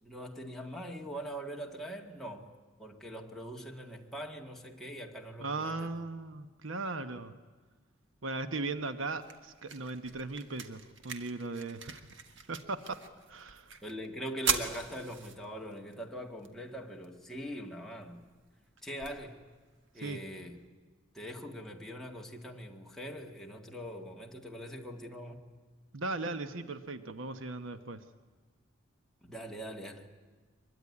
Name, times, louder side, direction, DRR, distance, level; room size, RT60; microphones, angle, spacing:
voice 1, 0.0-2.5 2.8-5.9 13.8-18.2 18.8-19.4 19.9-20.6 21.1-25.5 29.2-30.1, equal, ahead, 1.9 m, -42 dB
voice 2, 5.4-7.3 8.2-12.1 12.5-13.0 13.3-13.7 20.0-20.2 25.9-28.0, right 3 dB, 90° right, 1.1 m, -38 dB
sound 1, 8.7-20.7, right 6 dB, 70° right, 1.7 m, -42 dB
23.0 x 22.0 x 9.7 m
head